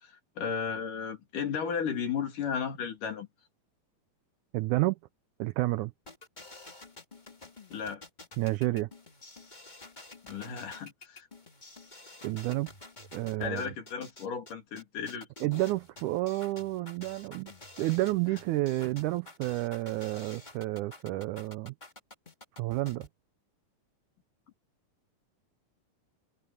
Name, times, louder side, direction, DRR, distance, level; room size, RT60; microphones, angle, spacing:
voice 1, 0.0-3.3 7.7-8.0 10.2-11.3 13.4-15.6, left 6 dB, 70° left, 4.4 m, -34 dB
voice 2, 4.5-5.0 5.4-5.9 8.4-8.9 12.2-12.7 13.1-13.6 15.4-17.5 17.8-21.7 22.6-23.1, right 18 dB, 80° right, 1.8 m, -30 dB
sound 1, 6.1-23.1, left 2 dB, 15° left, 1.7 m, -50 dB
omnidirectional pair, 3.9 m